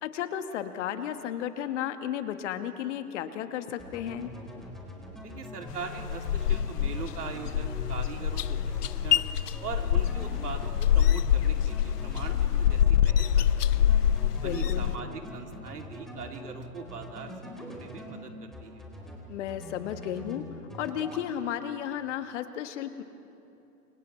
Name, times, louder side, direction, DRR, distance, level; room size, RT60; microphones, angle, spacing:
voice 1, 0.0-4.3 14.3-14.9 19.3-20.4 20.7-23.0, left 10 dB, 50° left, 9 dB, 1.5 m, -34 dB
sound 1, 3.8-18.2 18.5-19.2 19.5-20.4 20.7-21.3, equal, ahead, 4.2 m, -43 dB
voice 2, 5.2-9.2 9.6-13.5 13.8-14.0 14.4-18.8, right 5 dB, 80° right, 2 dB, 2.9 m, -41 dB
sound 2, 5.7-15.0, left 10 dB, 80° left, 0.6 m, -25 dB
29.5 x 27.5 x 3.3 m, 2.8 s
hypercardioid pair, 120°, 46 cm